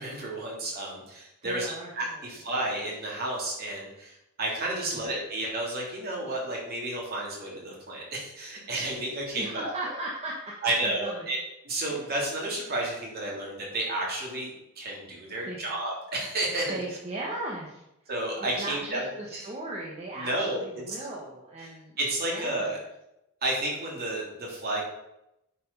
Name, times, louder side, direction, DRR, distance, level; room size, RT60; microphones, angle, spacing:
voice 1, 0.0-9.7 10.6-11.4 11.6-16.8 18.1-19.4 20.2-20.8 22.0-22.8 23.4-24.8, right 1 dB, 45° right, -3 dB, 3.1 m, -31 dB
voice 2, 1.4-2.3 4.8-5.1 9.3-10.3 10.6-11.3 11.9-12.0 15.4-15.6 16.7-17.8 18.5-22.0 22.2-22.8, right 2 dB, 30° right, -3 dB, 1.3 m, -37 dB
9.5 x 4.8 x 5.4 m, 0.86 s
head